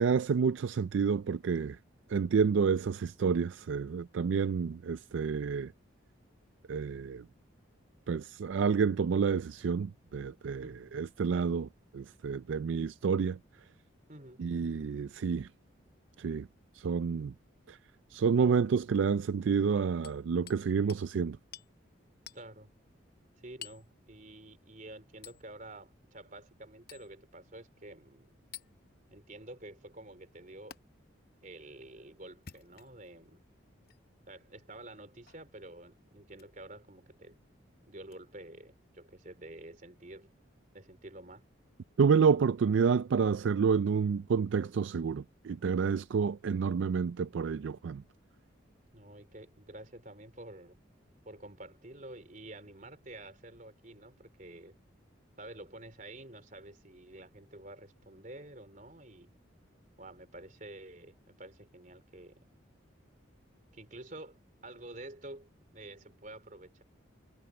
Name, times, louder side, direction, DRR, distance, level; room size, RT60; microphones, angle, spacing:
voice 1, 0.0-1.8 2.1-5.7 6.7-7.2 8.1-10.7 10.9-11.7 11.9-13.4 14.4-15.5 16.2-16.5 16.8-17.3 17.7-17.8 18.1-21.4 42.0-48.0, right 6 dB, 70° right, 0.4 m, -29 dB
voice 2, 10.6-11.0 14.1-14.5 22.3-22.7 23.4-28.3 29.1-30.8 31.4-33.4 34.3-37.4 37.8-40.3 40.7-41.4 48.9-50.8 51.3-54.8 55.4-59.3 60.0-62.4 63.7-66.8, right 1 dB, 40° right, 3.8 m, -49 dB
Hammer, 20.0-20.6 20.9-21.1 21.5-21.7 22.3-22.4 23.6-23.9 25.2-25.4 26.9-27.1 28.5-28.7 30.7-30.8 32.3-33.1 33.8-34.0 35.3-35.5 36.3-36.5 38.1-38.2, left 9 dB, 50° left, 0.8 m, -49 dB
head